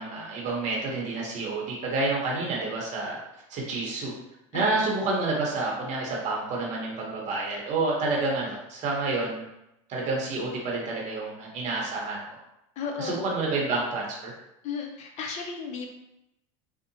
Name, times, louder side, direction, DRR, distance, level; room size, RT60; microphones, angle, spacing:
voice 1, 0.0-3.2 3.5-4.1 4.5-9.4 9.9-12.4 13.0-14.3, right 3 dB, 45° right, -3 dB, 0.8 m, -29 dB
voice 2, 12.8-13.2 14.6-16.0, left 5 dB, 45° left, 2 dB, 0.5 m, -34 dB
2.7 x 2.1 x 2.6 m, 0.86 s
supercardioid pair, 115°, 17 cm